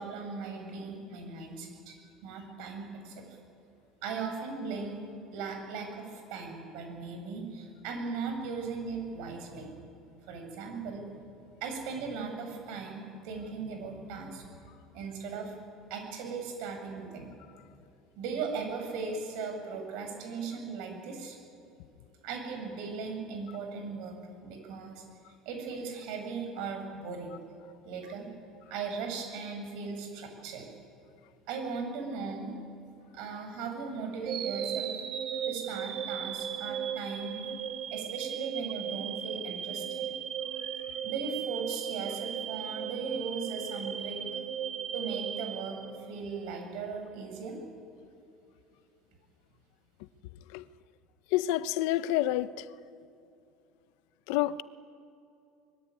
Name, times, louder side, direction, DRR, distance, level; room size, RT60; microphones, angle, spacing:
voice 1, 0.0-2.0 2.2-3.2 4.0-5.0 5.3-9.7 10.2-11.1 11.6-14.4 14.9-15.5 15.9-17.3 18.2-21.4 22.2-24.2 24.4-25.0 25.5-27.3 27.9-28.3 28.7-30.7 31.5-32.5 33.1-35.0 35.5-37.4 37.9-40.1 41.0-44.5 44.9-47.6, right 5 dB, 65° right, 7.2 m, -38 dB
sound 1, 34.3-46.4, right 9 dB, 40° right, 2.3 m, -36 dB
voice 2, 51.3-52.7 54.3-54.6, left 14 dB, 75° left, 0.9 m, -28 dB
24.5 x 21.5 x 9.8 m
cardioid pair, 155°, 0 cm